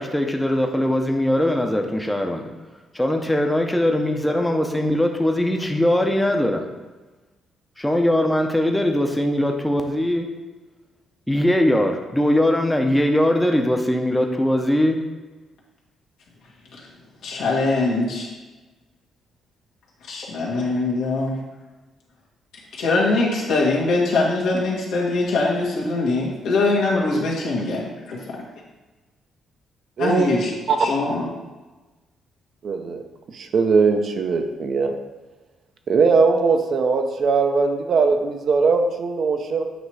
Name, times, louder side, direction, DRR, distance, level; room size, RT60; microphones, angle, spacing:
voice 1, 0.0-2.5 2.9-6.6 7.8-10.3 11.3-15.0, left 1 dB, 5° left, 3 dB, 0.7 m, -21 dB
voice 2, 17.2-18.3 20.1-21.4 22.7-27.8 30.0-30.5 30.8-31.3, left 3 dB, 80° left, -4 dB, 1.7 m, -22 dB
voice 3, 30.0-30.3 30.7-30.8 32.6-33.0 33.3-34.9 35.9-39.6, right 4 dB, 55° right, 5 dB, 0.7 m, -20 dB
8.0 x 3.0 x 4.8 m, 1.2 s
cardioid pair, 90°, 0 cm